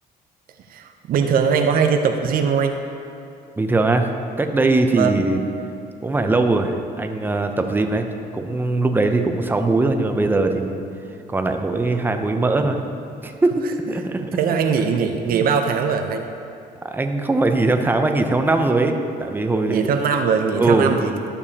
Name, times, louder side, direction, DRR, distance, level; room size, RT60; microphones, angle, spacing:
voice 1, 0.7-2.8 4.9-5.2 12.6-12.7 14.2-16.3 19.7-21.3, right 6 dB, 60° right, 5 dB, 0.6 m, -21 dB
voice 2, 3.6-4.1 4.4-5.4 6.0-8.1 8.3-10.8 11.3-12.8 13.2-14.3 16.8-19.9 20.5-21.0, right 2 dB, 10° right, 5 dB, 0.6 m, -20 dB
12.0 x 6.8 x 2.8 m, 2.6 s
cardioid pair, 110°, 17 cm